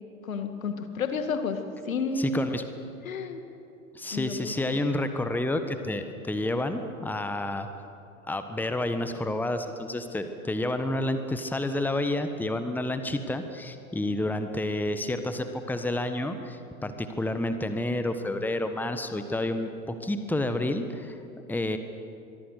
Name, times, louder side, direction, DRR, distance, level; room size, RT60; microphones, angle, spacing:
voice 1, 0.2-1.6 1.9-2.5 3.0-3.4 4.1-4.8, left 4 dB, 75° left, 7 dB, 2.3 m, -31 dB
voice 2, 2.2-2.6 3.9-7.7 8.3-21.8, left 1 dB, 5° left, 8 dB, 1.4 m, -30 dB
24.5 x 23.0 x 6.6 m, 2.6 s
figure-of-eight pair, 90°, 41 cm